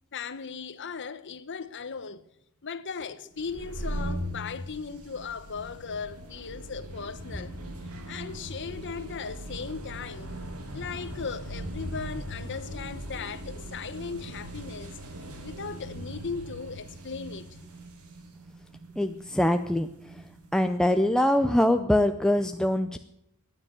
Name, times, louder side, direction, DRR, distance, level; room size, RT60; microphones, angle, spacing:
voice 1, 0.1-2.2 2.6-7.7 8.1-10.3 10.7-15.0 15.4-17.5, left 5 dB, 55° left, 1.0 m, -37 dB
sound 1, 3.4-20.8, equal, 80° right, 2.7 m, -40 dB
voice 2, 19.0-19.9 20.5-23.0, left 1 dB, 5° left, 0.5 m, -23 dB
15.0 x 9.9 x 8.1 m
head